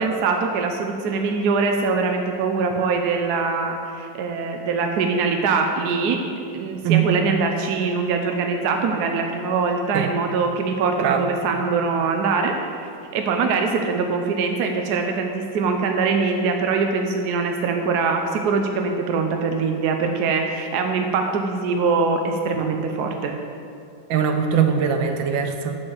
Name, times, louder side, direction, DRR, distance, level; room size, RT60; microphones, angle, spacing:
voice 1, 0.0-6.2 6.5-12.5 13.1-23.3, right 4 dB, 65° right, 4 dB, 1.1 m, -23 dB
voice 2, 24.1-25.7, right 7 dB, 85° right, 6 dB, 1.5 m, -21 dB
7.3 x 6.6 x 7.0 m, 2.5 s
omnidirectional pair, 2.1 m